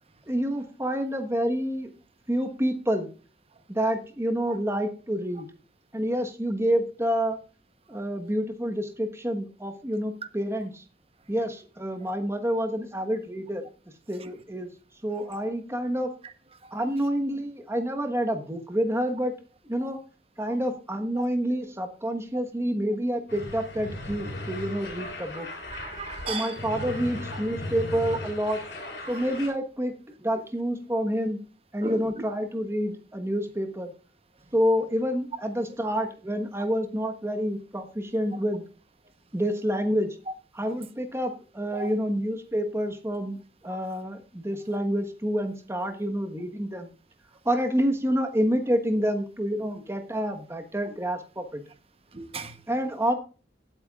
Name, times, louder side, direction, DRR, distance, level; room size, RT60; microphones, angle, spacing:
voice 1, 0.3-1.9 2.3-3.1 3.7-5.5 5.9-7.4 7.9-10.8 11.3-13.6 14.1-14.7 15.0-16.1 16.7-19.3 19.7-20.0 20.4-25.5 26.3-28.6 29.1-29.9 30.2-31.4 31.7-33.9 34.5-38.6 39.3-40.1 40.5-43.4 43.6-46.9 47.4-51.6 52.7-53.1, equal, 15° right, 1.3 m, -28 dB
sound 1, 23.3-29.5, left 1 dB, 65° left, 5.4 m, -37 dB
voice 2, 25.7-26.5 31.8-32.1 41.7-41.9 52.1-52.6, right 4 dB, 35° right, 1.0 m, -36 dB
18.0 x 8.8 x 2.4 m
head